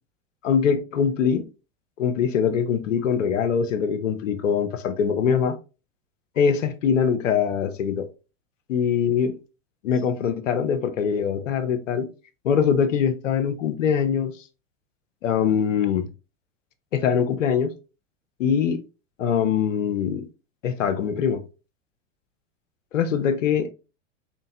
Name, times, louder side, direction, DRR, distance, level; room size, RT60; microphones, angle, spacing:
voice 1, 0.4-1.4 2.0-5.6 6.4-8.1 8.7-9.4 9.8-12.1 12.4-14.3 15.2-16.1 16.9-17.7 18.4-18.8 19.2-20.3 20.6-21.4 22.9-23.7, left 7 dB, 85° left, 0.7 m, -23 dB
4.3 x 2.8 x 2.7 m
hypercardioid pair, 100°, 37 cm